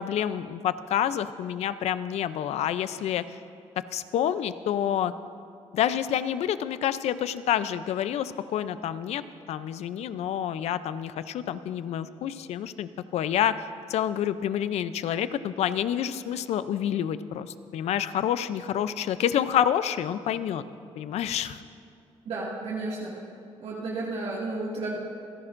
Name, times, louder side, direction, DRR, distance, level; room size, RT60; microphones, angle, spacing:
voice 1, 0.0-3.4 3.8-5.1 5.7-9.2 9.5-20.6 21.0-21.6, left 10 dB, 70° left, 13 dB, 0.5 m, -28 dB
voice 2, 22.3-23.1 23.6-25.0, right 2 dB, 70° right, -5 dB, 2.1 m, -32 dB
27.0 x 10.5 x 2.6 m, 2.5 s
cardioid pair, 105°, 11 cm